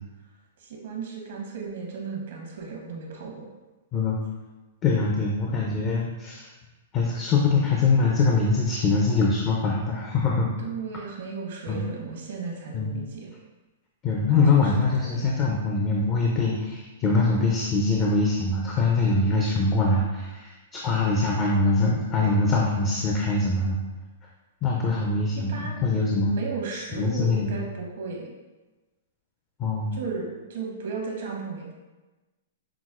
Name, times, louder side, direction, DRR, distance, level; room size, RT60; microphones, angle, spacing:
voice 1, 0.6-3.5 10.6-13.3 14.3-14.7 15.0-15.3 25.3-28.3 29.9-31.7, right 4 dB, 70° right, 0 dB, 0.8 m, -35 dB
voice 2, 4.8-6.5 6.9-10.5 11.7-11.8 12.7-12.9 14.0-23.8 24.6-26.3 26.7-27.6 29.6-30.0, left 3 dB, 30° left, -1 dB, 0.4 m, -23 dB
5.8 x 2.0 x 2.4 m, 1.2 s
hypercardioid pair, 130°, 0 cm